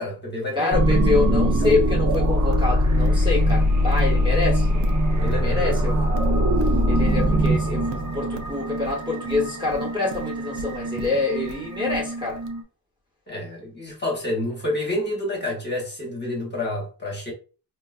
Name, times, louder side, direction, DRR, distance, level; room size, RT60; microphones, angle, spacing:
voice 1, 0.0-1.8 5.2-6.0 10.9-11.2 13.3-17.3, left 1 dB, 25° left, 1.0 m, -29 dB
voice 2, 0.5-4.7 5.2-6.0 6.9-12.4, left 3 dB, 10° right, 1.0 m, -26 dB
sound 1, 0.7-12.6, equal, 45° right, 0.7 m, -22 dB
Livestock farm animals working animals, 1.6-12.5, right 3 dB, 80° right, 0.6 m, -39 dB
4.6 x 2.3 x 2.4 m
wide cardioid pair, 135°, 42 cm